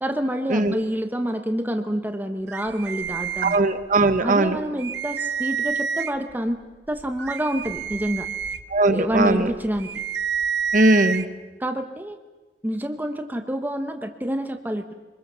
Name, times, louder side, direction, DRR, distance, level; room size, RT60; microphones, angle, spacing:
voice 1, 0.0-3.7 4.2-6.6 6.9-8.3 8.9-9.9 11.6-12.2 12.6-14.9, equal, 10° right, 6 dB, 1.1 m, -27 dB
sound 1, 2.5-4.1 4.4-4.5 4.8-6.3 6.9-11.2, right 6 dB, 70° right, 0.9 m, -29 dB
voice 2, 3.4-4.6 8.7-9.5 10.7-11.3, right 2 dB, 45° right, 9 dB, 1.3 m, -19 dB
25.0 x 21.5 x 6.9 m, 1.2 s
head